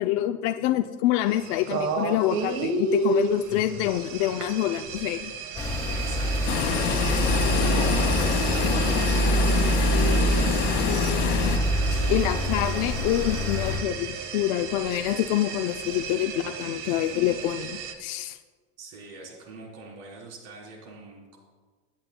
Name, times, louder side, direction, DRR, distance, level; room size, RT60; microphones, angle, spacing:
voice 1, 0.0-5.3 12.1-18.4, left 13 dB, 50° left, 6 dB, 0.5 m, -26 dB
sound 1, 1.3-17.9, right 4 dB, 50° right, 1.4 m, -33 dB
sound 2, 5.5-13.8, right 1 dB, 10° left, 1.9 m, -25 dB
voice 2, 5.9-7.2 7.6-10.7 10.9-11.3 11.8-13.0 18.8-21.4, right 3 dB, 70° right, -2 dB, 3.7 m, -44 dB
sound 3, 6.5-11.6, left 8 dB, 90° left, 1.8 m, -26 dB
24.5 x 9.7 x 2.2 m, 1.4 s
cardioid pair, 165°, 37 cm